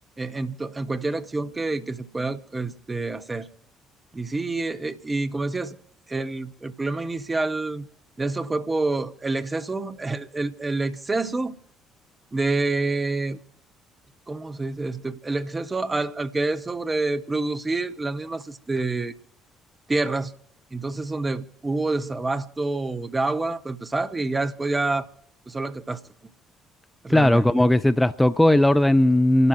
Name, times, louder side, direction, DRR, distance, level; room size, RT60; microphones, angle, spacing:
voice 1, 0.2-3.5 4.1-5.8 6.1-7.9 8.2-11.6 12.3-13.4 14.3-19.1 19.9-20.3 20.7-25.1 25.5-26.0 27.0-27.7, right 3 dB, 20° right, 0.9 m, -27 dB
voice 2, 27.1-29.5, left 1 dB, 10° left, 0.4 m, -18 dB
29.5 x 12.0 x 3.1 m
figure-of-eight pair, 50°, 0 cm